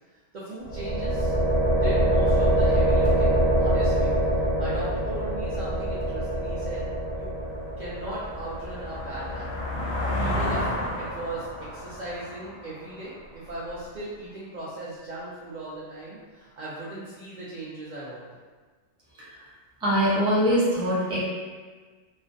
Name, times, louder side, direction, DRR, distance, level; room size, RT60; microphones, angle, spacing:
voice 1, 0.1-4.1 4.4-6.9 7.1-7.3 7.8-9.5 9.8-18.2, right 1 dB, 60° right, -9 dB, 0.5 m, -38 dB
sound 1, 0.6-10.5, right 1 dB, 90° right, 1.1 m, -25 dB
sound 2, 6.6-6.7 7.2-13.7, left 1 dB, 60° left, 0.6 m, -32 dB
voice 2, 19.8-21.2, equal, 5° right, -9 dB, 0.4 m, -23 dB
2.3 x 2.1 x 2.5 m, 1.4 s
omnidirectional pair, 1.2 m